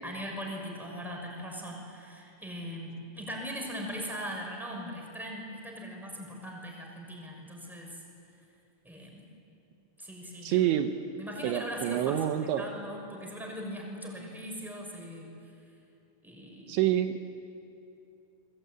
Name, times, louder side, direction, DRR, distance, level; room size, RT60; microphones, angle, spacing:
voice 1, 0.0-8.0 8.8-9.3 10.0-10.7 11.2-12.2 12.6-15.5 16.2-16.8, equal, ahead, 0 dB, 5.2 m, -40 dB
voice 2, 10.4-10.9 11.4-12.6 16.7-17.1, right 12 dB, 80° right, 7 dB, 3.2 m, -27 dB
29.5 x 21.5 x 9.3 m, 2.6 s
omnidirectional pair, 5.4 m